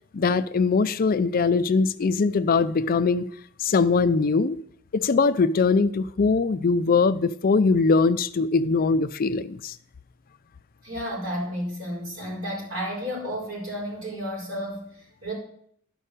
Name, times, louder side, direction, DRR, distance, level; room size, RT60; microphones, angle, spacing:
voice 1, 0.1-3.3 3.6-4.6 4.9-9.8, left 4 dB, 45° left, 0.4 m, -21 dB
voice 2, 10.8-15.3, equal, 80° right, 5.5 m, -32 dB
12.0 x 5.5 x 6.7 m
head